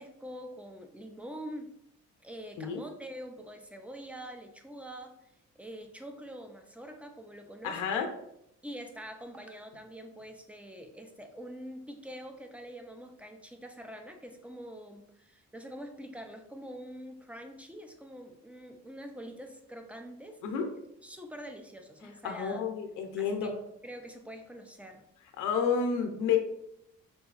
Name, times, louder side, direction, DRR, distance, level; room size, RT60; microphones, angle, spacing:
voice 1, 0.0-1.7 2.2-5.2 5.6-8.0 8.6-20.4 21.0-22.6 23.2-23.6 23.8-25.0, equal, 5° right, 5 dB, 0.4 m, -45 dB
voice 2, 7.6-8.1 20.4-20.7 22.2-23.5 25.4-26.4, left 6 dB, 85° left, 4 dB, 0.6 m, -30 dB
3.9 x 2.6 x 2.4 m, 0.77 s
cardioid pair, 90°, 30 cm